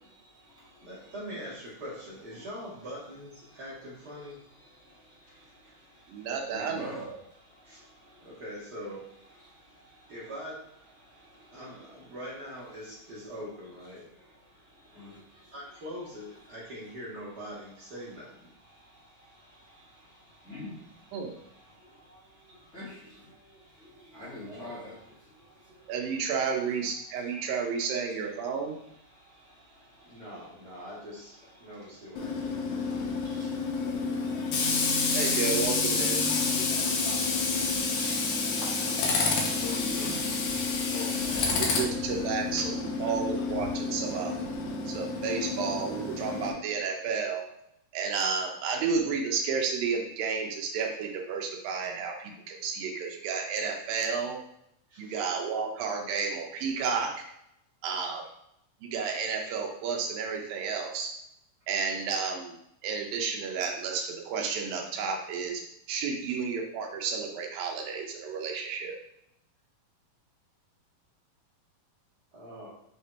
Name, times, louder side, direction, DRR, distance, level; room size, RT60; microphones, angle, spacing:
voice 1, 0.1-0.9 3.5-3.6 4.7-7.0 7.3-8.3 9.4-10.1 11.0-11.6 14.6-15.5 18.7-26.2 29.1-30.2 31.6-31.8 32.2-35.2 36.4-42.7, left 2 dB, 50° left, -9 dB, 0.8 m, -47 dB
voice 2, 0.8-4.4 5.6-5.7 7.6-7.8 8.2-9.0 10.1-10.6 11.5-14.0 15.5-18.5 24.4-24.8 30.0-32.9 36.8-37.0 54.9-55.2 72.3-72.7, equal, 40° right, -6 dB, 1.6 m, -43 dB
voice 3, 6.1-7.2 21.1-21.3 25.9-28.8 33.8-33.9 35.1-36.3 41.6-44.4 44.9-47.4 47.9-54.4 55.0-57.1 57.8-58.2 58.8-61.1 61.7-62.6 62.8-65.6 65.9-69.0, right 5 dB, 75° right, 2 dB, 2.6 m, -31 dB
Tools, 32.2-46.5, left 4 dB, 70° left, 1.9 m, -29 dB
6.4 x 3.5 x 4.3 m, 0.77 s
omnidirectional pair, 4.2 m